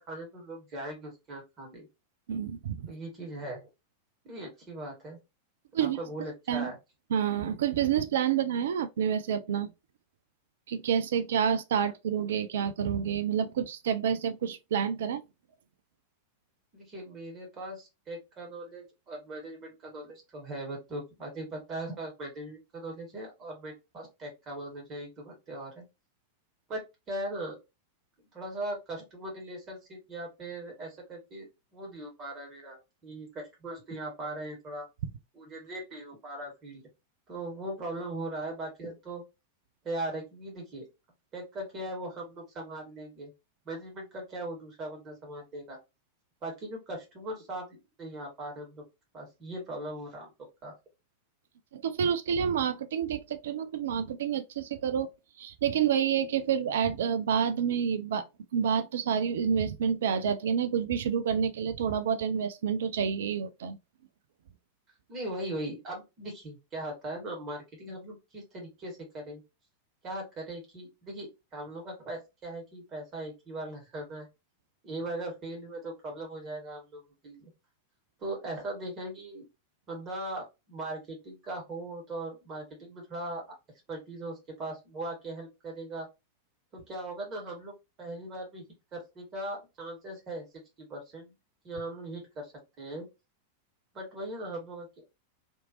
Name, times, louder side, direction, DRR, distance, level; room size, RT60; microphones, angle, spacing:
voice 1, 0.0-1.9 2.9-3.6 4.2-5.2 6.0-6.8 16.7-25.8 26.7-26.8 27.1-27.6 28.3-34.9 35.3-36.8 37.3-39.2 39.8-40.9 41.3-43.3 43.6-45.8 46.4-48.8 49.1-50.3 50.6-50.7 65.1-69.4 70.0-71.3 71.5-74.3 74.8-77.5 78.2-79.4 79.9-83.4 83.9-86.1 86.7-87.7 88.0-88.6 88.9-90.4 90.8-91.3 91.6-92.5 92.8-93.1 93.9-95.0, right 1 dB, 30° right, 1.6 m, -39 dB
voice 2, 2.3-2.9 5.7-6.0 6.5-6.7 7.1-9.7 10.7-15.2 51.7-55.1 55.4-58.3 58.5-63.8, right 8 dB, 60° right, 0.3 m, -28 dB
2.8 x 2.6 x 2.8 m
figure-of-eight pair, 90°, 0 cm